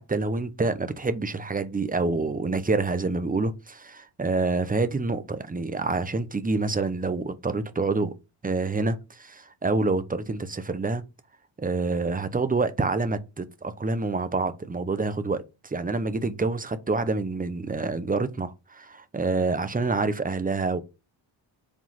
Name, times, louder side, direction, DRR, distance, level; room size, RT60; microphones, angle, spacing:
voice 1, 0.0-8.1 8.4-11.0 11.6-20.8, right 3 dB, 15° right, 0.8 m, -27 dB
5.1 x 3.8 x 5.7 m
cardioid pair, 85°, 50 cm